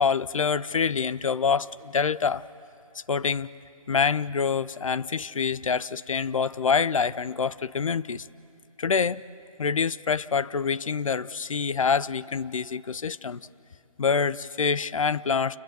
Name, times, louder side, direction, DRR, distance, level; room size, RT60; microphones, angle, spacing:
voice 1, 0.0-2.5 3.1-3.5 3.9-8.3 8.8-9.2 9.6-13.5 14.0-15.6, left 5 dB, 65° left, 17 dB, 0.6 m, -26 dB
28.5 x 27.5 x 6.9 m, 2.5 s
figure-of-eight pair, 150°, 19 cm